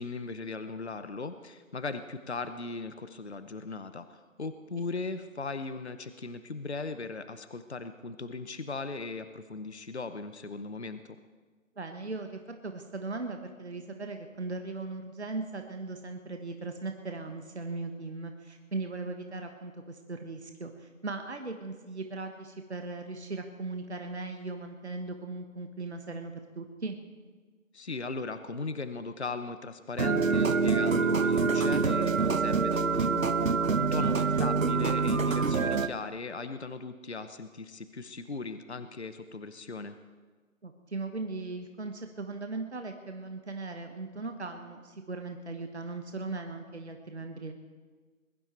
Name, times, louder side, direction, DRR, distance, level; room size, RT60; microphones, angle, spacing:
voice 1, 0.0-11.2 27.7-40.0, left 3 dB, 50° left, 10 dB, 0.9 m, -38 dB
voice 2, 11.7-27.0 33.9-34.4 40.6-47.5, right 3 dB, 50° right, 5 dB, 1.4 m, -38 dB
sound 1, 30.0-35.9, right 4 dB, 70° right, 1.0 m, -26 dB
21.5 x 12.0 x 4.5 m, 1.4 s
figure-of-eight pair, 175°, 41 cm